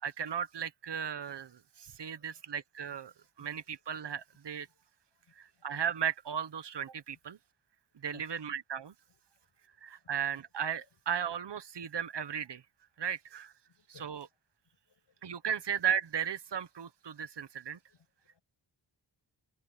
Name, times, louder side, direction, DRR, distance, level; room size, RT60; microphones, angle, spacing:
voice 1, 0.0-4.7 5.4-7.4 7.9-8.9 9.8-12.6 13.0-13.5 14.0-14.2 15.2-17.8, right 8 dB, 65° right, 1.2 m, -36 dB
voice 2, 2.1-2.5 3.6-3.8 4.7-4.8 5.1-5.2 8.1-8.4 9.1-9.2 10.0-10.3 10.9-11.0 13.7-14.1 14.9-15.2 17.4-18.4, left 7 dB, 80° left, 6.7 m, -63 dB
wide cardioid pair, 105°, 44 cm